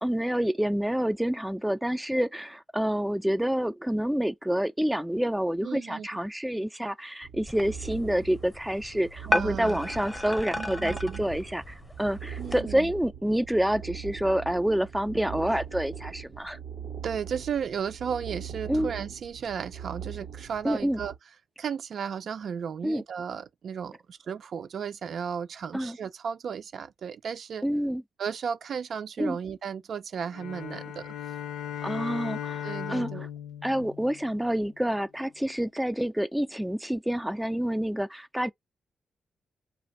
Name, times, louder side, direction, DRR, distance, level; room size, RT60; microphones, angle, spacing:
voice 1, 0.0-16.6 18.7-18.9 20.6-21.0 22.8-23.0 25.7-26.0 27.6-28.0 29.2-29.4 31.8-33.3 33.6-38.5, equal, 5° right, 0.3 m, -28 dB
voice 2, 5.6-6.1 9.3-9.8 10.5-11.2 12.4-12.9 17.0-21.1 21.6-27.6 28.2-31.1 32.6-33.3, right 7 dB, 65° right, 0.5 m, -34 dB
sound 1, 7.2-21.2, right 8 dB, 90° right, 1.0 m, -41 dB
sound 2, 7.5-12.6, left 1 dB, 10° left, 0.7 m, -34 dB
sound 3, 30.3-34.8, left 10 dB, 90° left, 0.4 m, -37 dB
2.5 x 2.4 x 4.1 m
cardioid pair, 75°, 0 cm